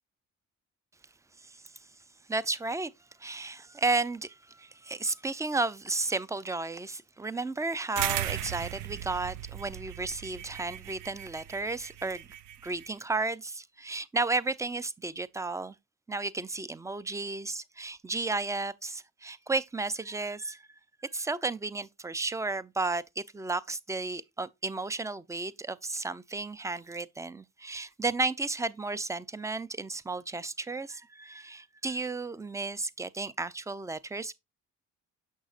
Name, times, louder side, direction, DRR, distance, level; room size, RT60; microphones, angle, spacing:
voice 1, 2.3-2.9 3.2-12.3 12.6-15.8 16.1-20.6 21.1-34.3, right 3 dB, 10° right, 0.4 m, -33 dB
sound 1, 8.0-12.9, right 13 dB, 85° right, 0.5 m, -37 dB
6.3 x 6.3 x 2.4 m
cardioid pair, 90°, 30 cm